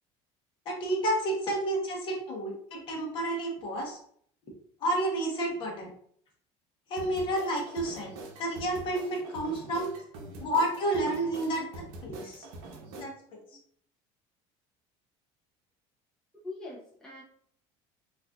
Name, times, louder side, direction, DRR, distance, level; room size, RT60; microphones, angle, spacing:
voice 1, 0.7-4.0 4.8-5.9 6.9-8.1 8.4-9.9 10.4-12.5 13.0-13.4, right 1 dB, 40° left, 0 dB, 0.8 m, -30 dB
sound 1, 7.0-13.0, right 2 dB, 85° right, 0.8 m, -45 dB
voice 2, 16.4-17.2, left 2 dB, 5° left, -6 dB, 0.5 m, -42 dB
3.9 x 2.4 x 2.3 m, 0.62 s
cardioid pair, 165°, 13 cm